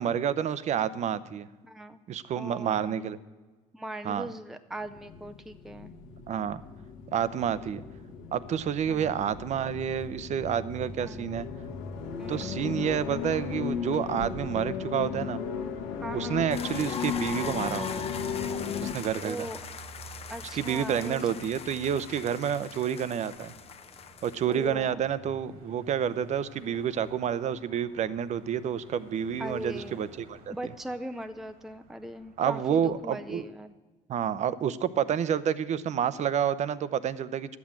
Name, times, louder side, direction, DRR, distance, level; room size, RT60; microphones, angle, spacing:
voice 1, 0.0-1.5 2.1-3.2 4.0-4.3 6.3-6.6 7.1-7.8 8.3-11.5 12.3-15.4 16.1-18.1 18.8-19.5 20.5-23.5 24.2-30.7 32.4-33.5 34.1-37.6, right 8 dB, 50° right, 16 dB, 0.7 m, -29 dB
voice 2, 1.6-2.0 2.3-2.9 3.7-5.9 8.9-9.1 11.0-11.2 12.2-12.6 16.0-16.5 19.2-19.6 20.3-21.4 24.5-25.0 29.4-30.0 30.5-33.7, right 1 dB, ahead, 8 dB, 0.6 m, -39 dB
sound 1, 4.8-18.9, left 6 dB, 90° left, 1.3 m, -36 dB
sound 2, 14.8-33.5, right 3 dB, 80° right, 2.0 m, -53 dB
sound 3, 16.5-24.6, left 7 dB, 40° left, 0.9 m, -41 dB
11.5 x 8.4 x 7.4 m, 1.3 s
supercardioid pair, 80°, 15 cm